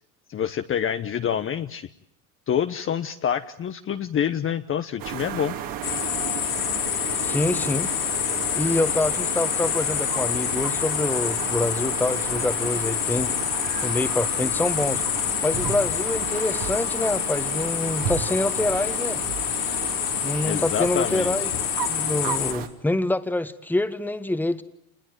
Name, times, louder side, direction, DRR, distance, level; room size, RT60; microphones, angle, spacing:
voice 1, 0.3-1.9 2.5-5.5 20.4-21.3, left 9 dB, 30° left, 8 dB, 1.0 m, -27 dB
sound 1, 5.0-22.7, right 9 dB, 50° right, 2.9 m, -33 dB
sound 2, 5.8-22.5, left 14 dB, 65° left, 3.6 m, -27 dB
voice 2, 7.2-7.9 8.6-13.4 13.8-15.0 15.4-19.2 20.2-21.5 21.9-24.6, left 2 dB, 5° left, 11 dB, 1.5 m, -26 dB
27.5 x 20.5 x 9.2 m, 0.73 s
supercardioid pair, 100°, 42 cm